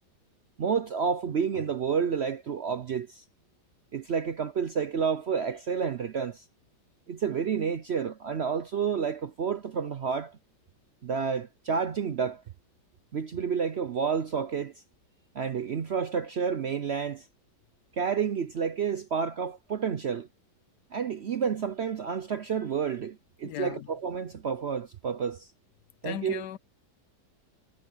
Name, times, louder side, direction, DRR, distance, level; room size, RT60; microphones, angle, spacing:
voice 1, 0.6-3.2 3.9-6.4 7.1-10.4 11.0-12.4 13.1-14.7 15.3-17.3 18.0-20.3 20.9-25.5 26.0-26.4, right 6 dB, 55° right, 0.7 m, -30 dB
voice 2, 23.4-23.9 26.0-26.6, left 12 dB, 75° left, 1.2 m, -37 dB
omnidirectional pair, 1.9 m